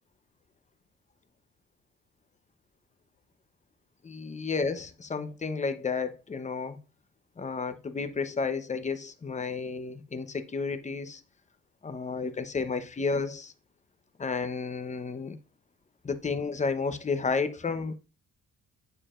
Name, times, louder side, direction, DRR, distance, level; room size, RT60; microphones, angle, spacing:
voice 1, 4.0-6.8 7.4-11.2 11.8-13.5 14.2-15.4 16.0-18.0, left 4 dB, 25° left, 0.8 m, -32 dB
7.1 x 6.6 x 2.5 m
cardioid pair, 90°, 30 cm